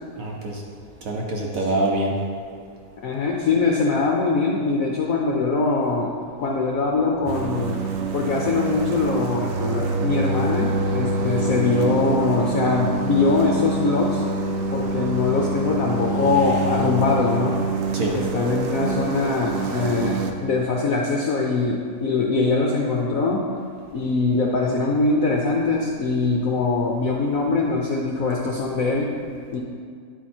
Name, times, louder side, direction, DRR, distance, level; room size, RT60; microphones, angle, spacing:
voice 1, 0.2-0.6 1.0-2.2 17.9-18.2, right 1 dB, 60° right, -1 dB, 1.0 m, -25 dB
voice 2, 3.0-6.1 6.4-7.8 8.1-14.2 14.7-17.6 18.1-23.5 23.9-29.2 29.5-29.6, left 3 dB, 70° left, -1 dB, 0.8 m, -22 dB
sound 1, 7.3-20.3, right 3 dB, 80° right, 1.4 m, -26 dB
9.3 x 4.5 x 4.2 m, 2.1 s
omnidirectional pair, 2.0 m